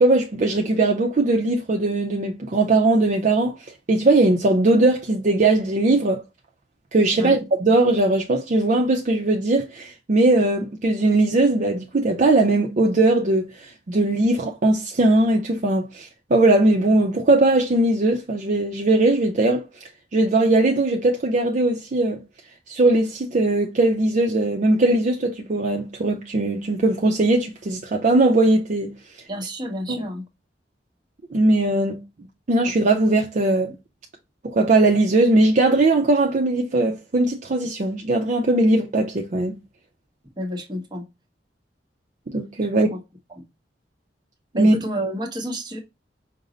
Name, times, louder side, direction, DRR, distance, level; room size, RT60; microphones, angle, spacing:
voice 1, 0.0-3.5 3.9-6.2 6.9-19.7 20.1-22.2 22.7-28.9 29.9-30.0 31.3-32.0 32.5-33.7 34.4-39.6 42.3-43.0 44.5-44.8, right 2 dB, 45° right, 0.5 m, -19 dB
voice 2, 29.3-30.2 40.4-41.0 42.9-43.0 44.5-45.8, equal, 25° right, 0.9 m, -29 dB
5.2 x 2.0 x 3.7 m
head